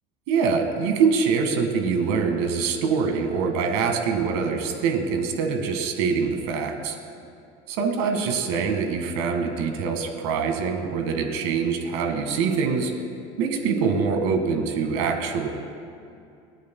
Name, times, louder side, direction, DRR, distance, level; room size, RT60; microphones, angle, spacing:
voice 1, 0.3-7.0 7.7-12.9 13.4-15.5, right 5 dB, 80° right, 4 dB, 1.8 m, -24 dB
28.5 x 9.8 x 2.3 m, 2.5 s
cardioid pair, 160°, 14 cm